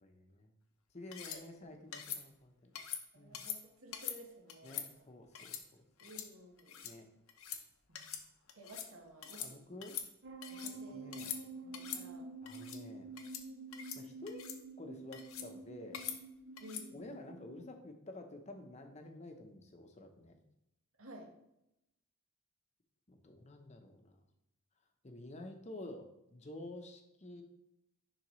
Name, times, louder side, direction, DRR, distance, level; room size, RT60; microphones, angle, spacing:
voice 1, 0.0-0.5 0.9-2.7 3.1-3.4 4.6-5.6 6.8-7.1 9.4-10.0 10.9-11.4 12.4-13.1 14.0-14.5 14.8-16.0 16.9-20.4 23.1-24.2 25.0-27.4, left 1 dB, 30° left, 5 dB, 0.8 m, -50 dB
sound 1, 1.1-1.4 1.9-2.2 2.8-3.0 3.3-3.6 3.9-4.2 4.5-4.9 5.3-5.6 6.0-6.3 6.6-6.9 7.3-7.6 7.9-8.2 8.5-8.9 9.2-9.5 9.8-10.7 11.1-11.4 11.7-12.0 12.5-12.8 13.2-13.4 13.7-14.0 14.3-14.6 15.1-15.5 15.9-16.2 16.6-16.9, left 9 dB, 80° left, 0.8 m, -43 dB
voice 2, 3.1-5.1 6.0-6.8 7.9-8.2 8.5-9.6 10.5-11.3 11.6-12.3 16.6-17.1 21.0-21.3, equal, 75° right, 1 dB, 1.3 m, -54 dB
sound 2, 10.2-17.7, right 2 dB, 55° right, 0.6 m, -49 dB
10.5 x 3.8 x 3.1 m, 0.84 s
head